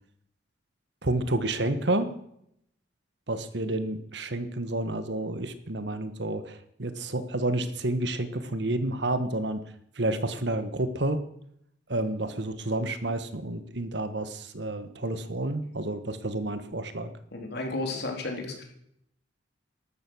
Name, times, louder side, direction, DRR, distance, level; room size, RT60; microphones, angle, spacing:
voice 1, 1.0-2.1 3.3-9.6 9.9-11.2 11.9-17.1, right 1 dB, 65° right, 11 dB, 1.5 m, -30 dB
voice 2, 17.3-18.6, left 2 dB, 60° left, 2 dB, 3.8 m, -33 dB
14.0 x 12.5 x 6.4 m, 0.73 s
head